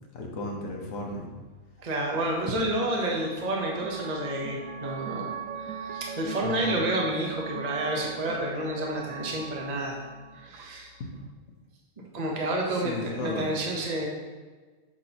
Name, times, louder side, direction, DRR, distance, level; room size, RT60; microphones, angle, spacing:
voice 1, 0.1-1.3 6.4-6.8 12.7-13.5, left 3 dB, 65° left, 0 dB, 1.5 m, -35 dB
sound 1, 1.0-11.3, right 6 dB, 75° right, 1.2 m, -40 dB
voice 2, 1.8-5.3 5.6-10.0 10.3-10.9 12.1-14.1, right 1 dB, 30° right, -2 dB, 1.0 m, -30 dB
8.7 x 6.0 x 3.0 m, 1.4 s
omnidirectional pair, 1.5 m